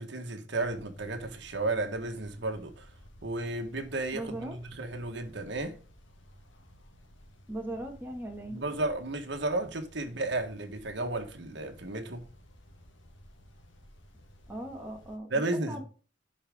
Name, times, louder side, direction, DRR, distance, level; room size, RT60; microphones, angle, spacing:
voice 1, 0.0-2.9 3.2-5.8 8.5-12.2 15.3-15.8, right 2 dB, 60° right, 1.6 m, -33 dB
sound 1, 0.6-15.2, equal, 75° left, 1.8 m, -55 dB
voice 2, 4.1-4.5 7.5-8.7 14.5-15.8, right 1 dB, 10° right, 2.1 m, -39 dB
11.0 x 5.0 x 3.8 m
head